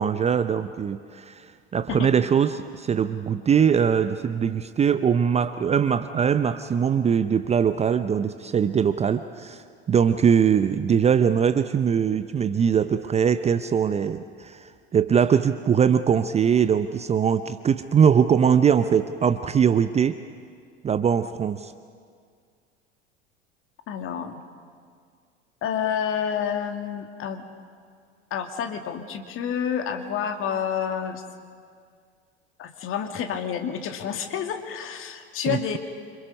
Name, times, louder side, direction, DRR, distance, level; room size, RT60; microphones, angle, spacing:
voice 1, 0.0-1.5 1.7-9.6 9.9-20.2 20.8-21.7 35.5-35.8, right 7 dB, 20° right, 11 dB, 0.7 m, -21 dB
voice 2, 23.9-24.4 25.6-27.4 28.3-31.2 32.6-35.8, left 8 dB, 40° left, 5 dB, 2.3 m, -29 dB
28.0 x 26.0 x 5.4 m, 2.1 s
figure-of-eight pair, 75°, 33 cm